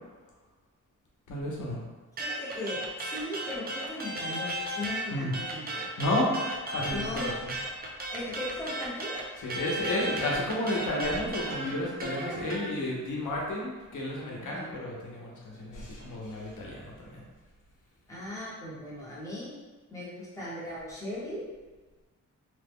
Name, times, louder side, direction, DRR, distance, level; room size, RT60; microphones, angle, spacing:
voice 1, 1.3-1.8 5.1-5.3 6.0-6.3 6.6-7.5 9.4-17.2, left 1 dB, 80° left, -4 dB, 0.8 m, -32 dB
voice 2, 2.2-5.9 6.9-7.3 8.1-9.2 14.4-14.6 18.1-19.5 19.9-21.4, left 1 dB, 10° left, -9 dB, 0.9 m, -38 dB
sound 1, 2.2-5.0 5.3-12.7, right 1 dB, 30° right, 0.4 m, -35 dB
2.9 x 2.2 x 3.5 m, 1.3 s
wide cardioid pair, 155°, 30 cm